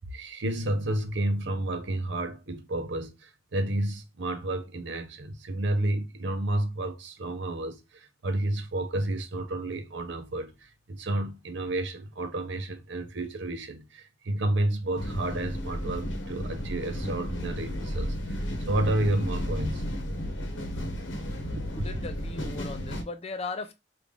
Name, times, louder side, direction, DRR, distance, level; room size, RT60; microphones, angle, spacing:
voice 1, 0.1-19.8 21.6-21.9, right 1 dB, 70° right, 0.6 m, -31 dB
sound 1, 14.9-23.0, equal, 90° left, 0.9 m, -33 dB
voice 2, 21.8-23.7, left 3 dB, 35° left, 0.5 m, -37 dB
3.2 x 2.5 x 3.6 m
head